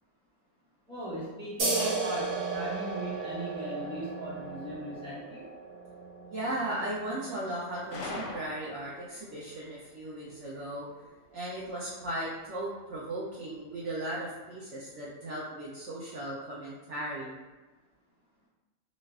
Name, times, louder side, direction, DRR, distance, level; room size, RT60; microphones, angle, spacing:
voice 1, 0.9-5.5, right 1 dB, 5° left, -10 dB, 1.0 m, -38 dB
sound 1, 1.6-8.7, right 3 dB, 90° right, 1.4 m, -35 dB
voice 2, 6.3-10.9 11.3-17.4, right 1 dB, 65° right, -6 dB, 0.8 m, -36 dB
Gunshot gunfire, 7.9-9.1, left 2 dB, 65° left, 0.8 m, -40 dB
4.0 x 2.4 x 2.3 m, 1.2 s
omnidirectional pair, 1.5 m